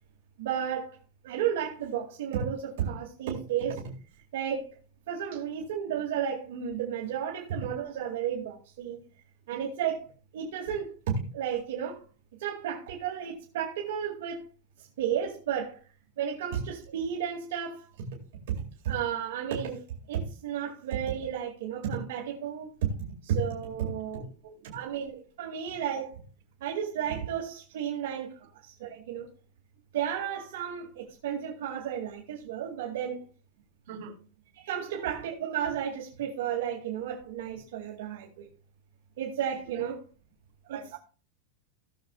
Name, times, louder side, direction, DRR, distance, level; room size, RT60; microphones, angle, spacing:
voice 1, 0.4-1.0 1.2-3.9 4.3-4.7 5.1-9.0 9.5-10.1 10.3-12.0 12.4-14.4 15.0-15.8 16.2-18.1 18.5-19.8 20.1-22.9 23.2-26.2 26.6-29.3 29.9-33.2 34.6-38.5 39.2-40.0 40.7-40.8, right 8 dB, 65° right, 2.4 m, -33 dB
voice 2, 23.8-24.2 24.5-24.8 33.9-34.2 34.8-35.0 39.7-39.9 40.6-41.0, right 7 dB, 50° right, 2.9 m, -46 dB
18.0 x 7.0 x 2.5 m
supercardioid pair, 175°, 0 cm